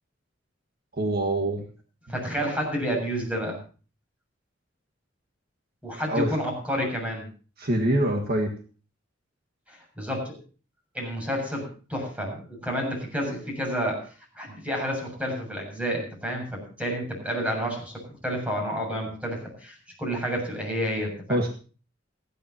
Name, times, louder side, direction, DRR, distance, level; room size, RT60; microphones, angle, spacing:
voice 1, 0.9-1.6 6.1-6.3 7.6-8.5 21.3-21.5, right 1 dB, 50° right, 2 dB, 1.7 m, -24 dB
voice 2, 2.1-3.6 5.8-7.2 9.7-10.3 10.9-14.1 14.4-17.9 18.2-21.4, equal, 5° right, 0 dB, 7.4 m, -30 dB
29.0 x 10.0 x 2.9 m, 0.38 s
head